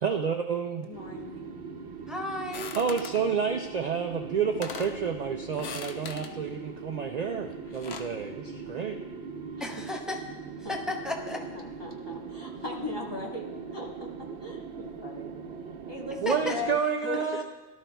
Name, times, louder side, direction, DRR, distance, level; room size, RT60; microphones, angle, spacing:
voice 1, 0.0-0.9 2.7-9.0 16.2-17.4, right 6 dB, 50° right, 4 dB, 0.6 m, -29 dB
voice 2, 0.8-1.5 10.6-13.5 13.7-15.3 15.9-17.4, left 3 dB, 25° left, -3 dB, 1.6 m, -39 dB
sound 1, 0.9-16.8, right 5 dB, 80° right, 1.0 m, -41 dB
voice 3, 2.1-2.8 9.6-10.2 10.7-11.4 16.3-16.6, left 1 dB, ahead, 1 dB, 1.0 m, -33 dB
sound 2, 2.5-3.2 4.1-4.2 4.5-5.0 5.5-6.3 7.5-8.2, left 6 dB, 80° left, 1.0 m, -40 dB
17.5 x 12.5 x 2.3 m, 1.1 s
omnidirectional pair, 1.1 m